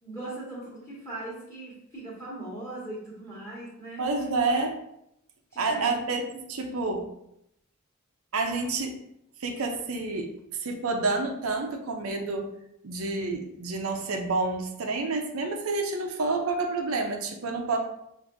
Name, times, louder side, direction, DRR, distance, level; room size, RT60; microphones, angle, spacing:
voice 1, 0.0-4.0 5.5-6.0, right 2 dB, 15° left, -8 dB, 1.4 m, -39 dB
voice 2, 4.0-4.8 5.6-7.1 8.3-9.0 9.4-10.3 10.6-12.5 12.8-17.8, right 3 dB, 75° right, 3 dB, 0.6 m, -29 dB
6.3 x 2.6 x 2.6 m, 0.79 s
head